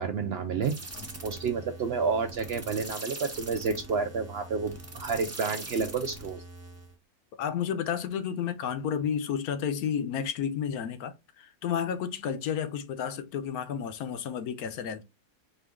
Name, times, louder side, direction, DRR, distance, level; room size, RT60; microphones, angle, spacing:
voice 1, 0.0-0.7 1.2-6.4, right 5 dB, 75° right, 0.5 m, -30 dB
sound 1, 0.6-6.9, right 2 dB, 25° right, 0.3 m, -43 dB
voice 2, 7.4-15.0, left 8 dB, 75° left, 1.0 m, -31 dB
4.5 x 2.5 x 3.5 m
omnidirectional pair, 1.7 m